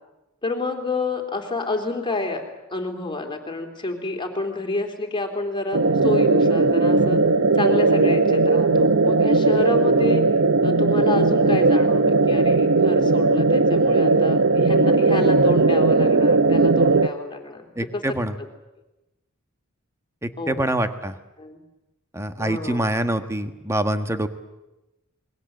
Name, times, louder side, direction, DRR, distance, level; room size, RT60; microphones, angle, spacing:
voice 1, 0.4-2.4 2.7-7.2 7.5-10.2 10.6-18.2 20.4-20.7 21.4-21.6 22.4-22.8, left 3 dB, 25° left, 3 dB, 3.4 m, -29 dB
sound 1, 5.7-17.1, right 3 dB, 65° right, 0.8 m, -18 dB
voice 2, 17.7-18.3 20.2-21.1 22.1-24.3, right 1 dB, 15° right, 8 dB, 1.4 m, -25 dB
27.5 x 21.5 x 7.9 m, 0.98 s
head